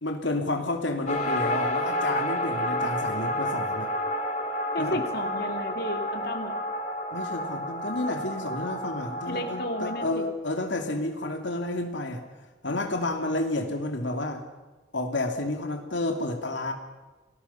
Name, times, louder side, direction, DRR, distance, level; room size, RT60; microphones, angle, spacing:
voice 1, 0.0-3.9 4.8-5.0 7.1-12.2 12.6-14.4 14.9-16.7, left 2 dB, 75° left, 3 dB, 2.6 m, -30 dB
sound 1, 1.1-10.1, equal, 40° left, 2.4 m, -30 dB
voice 2, 4.7-6.6 9.3-10.2, left 1 dB, 55° left, 4 dB, 2.8 m, -33 dB
29.5 x 20.5 x 5.7 m, 1.3 s
head